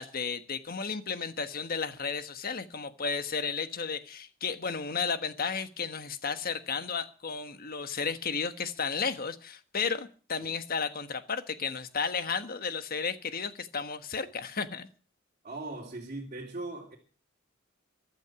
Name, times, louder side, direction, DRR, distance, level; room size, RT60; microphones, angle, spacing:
voice 1, 0.0-14.9, left 5 dB, 50° left, 1.3 m, -33 dB
voice 2, 15.4-17.0, right 2 dB, 40° right, 2.8 m, -39 dB
15.5 x 12.0 x 5.9 m
head